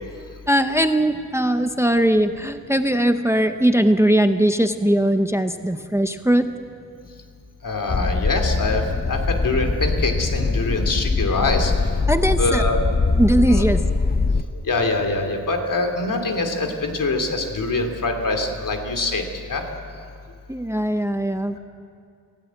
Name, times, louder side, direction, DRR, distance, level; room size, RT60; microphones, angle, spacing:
voice 1, 0.5-6.5 12.1-12.6 13.1-13.8 20.5-21.6, right 1 dB, 10° right, 8 dB, 0.7 m, -20 dB
voice 2, 7.6-11.7 12.4-12.8 13.5-13.6 14.7-19.2 19.5-19.6, left 2 dB, 65° left, 4 dB, 2.8 m, -24 dB
sound 1, 7.9-14.4, left 3 dB, 30° left, 0.7 m, -22 dB
27.5 x 16.5 x 8.2 m, 2.4 s
wide cardioid pair, 140°, 34 cm